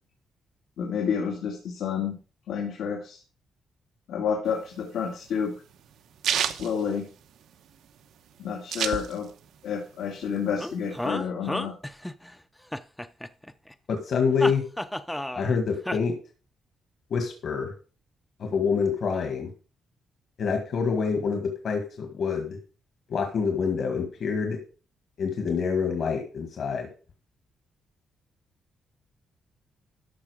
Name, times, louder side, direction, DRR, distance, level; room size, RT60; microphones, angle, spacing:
voice 1, 0.8-2.2 2.5-3.2 4.1-5.5 6.5-7.1 8.4-9.3 9.6-11.7, left 7 dB, 85° left, 0 dB, 2.4 m, -29 dB
sound 1, 4.5-7.7 8.0-8.1 8.3-9.6 9.9-11.0, right 9 dB, 85° right, 0.9 m, -30 dB
sound 2, 10.6-12.3 12.7-13.7 14.4-15.6 15.9-16.0, left 1 dB, 5° left, 0.5 m, -32 dB
voice 2, 13.9-14.7 15.3-16.1 17.1-17.7 18.4-19.5 20.4-22.6 23.1-24.6 25.2-26.9, left 5 dB, 55° left, 3 dB, 1.7 m, -26 dB
13.0 x 5.8 x 4.9 m, 0.38 s
cardioid pair, 150°, 0 cm